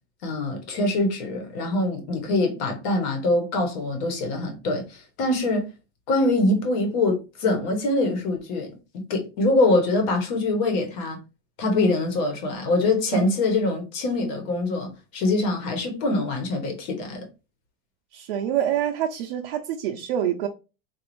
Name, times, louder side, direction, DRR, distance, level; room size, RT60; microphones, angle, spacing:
voice 1, 0.2-5.7 6.1-8.7 9.1-11.2 11.6-17.2, left 2 dB, 45° left, 1.2 m, -24 dB
voice 2, 18.1-20.5, right 10 dB, 75° right, 0.7 m, -26 dB
4.0 x 2.6 x 3.1 m
supercardioid pair, 180°, 31 cm